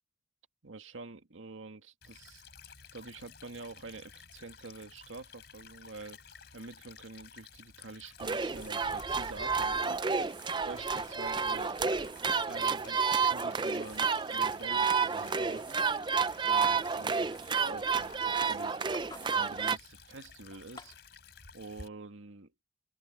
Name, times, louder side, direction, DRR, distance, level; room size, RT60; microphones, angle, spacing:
voice 1, 0.6-2.4 2.9-6.2 6.5-10.3 10.6-11.7 12.5-15.8 16.4-18.8 19.3-20.9 21.5-22.5, right 3 dB, 85° right, 1.9 m, -47 dB
Stream / Trickle dribble, 2.0-21.9, left 6 dB, 55° left, 4.6 m, -54 dB
sound 1, 8.2-21.0, left 3 dB, 25° left, 2.4 m, -58 dB
sound 2, 8.2-19.8, right 5 dB, 25° right, 0.4 m, -30 dB
open air
head